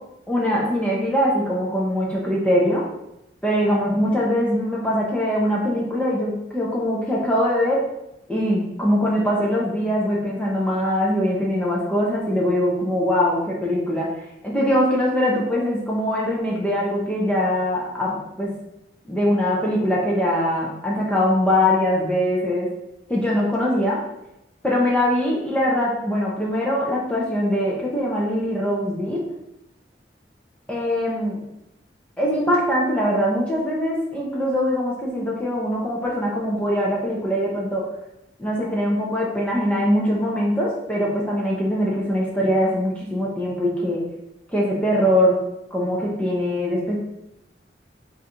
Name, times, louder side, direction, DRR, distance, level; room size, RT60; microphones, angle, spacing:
voice 1, 0.3-2.9 3.4-7.8 8.3-14.1 14.4-18.5 19.1-22.7 23.1-24.0 24.6-29.2 30.7-31.4 32.2-37.8 38.4-44.0 44.5-45.4 45.7-47.0, equal, 5° left, -5 dB, 0.5 m, -22 dB
2.5 x 2.4 x 4.1 m, 0.86 s
head